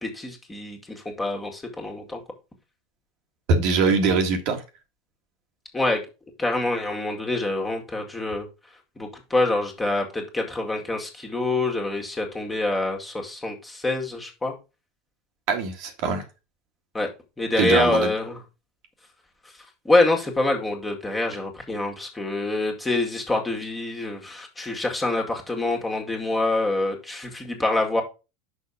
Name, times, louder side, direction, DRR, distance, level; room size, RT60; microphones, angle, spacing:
voice 1, 0.0-2.2 5.7-6.0 6.4-8.5 9.0-14.6 16.9-17.1 17.4-18.4 19.8-28.0, left 2 dB, 15° left, 2.2 m, -26 dB
voice 2, 3.5-4.6 15.5-16.2 17.6-18.1, right 4 dB, 50° right, 1.7 m, -22 dB
6.4 x 5.4 x 4.9 m
figure-of-eight pair, 80°, 0 cm